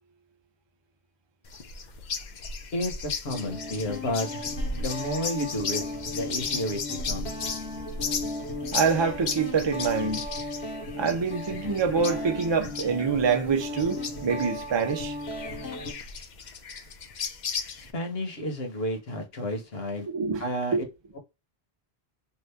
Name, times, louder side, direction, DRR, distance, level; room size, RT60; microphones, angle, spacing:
sound 1, 1.5-17.9, left 4 dB, 55° left, 0.6 m, -36 dB
Guitar, 2.0-2.3 3.3-15.9, left 2 dB, 90° left, 1.3 m, -36 dB
voice 1, 2.7-4.4 4.7-5.8 6.1-7.3 17.8-20.1 20.4-20.8, left 1 dB, 70° left, 1.3 m, -31 dB
voice 2, 8.7-10.3 10.9-15.1 20.1-20.5 20.7-20.8, right 5 dB, 35° right, 0.5 m, -26 dB
2.8 x 2.6 x 3.3 m
omnidirectional pair, 1.1 m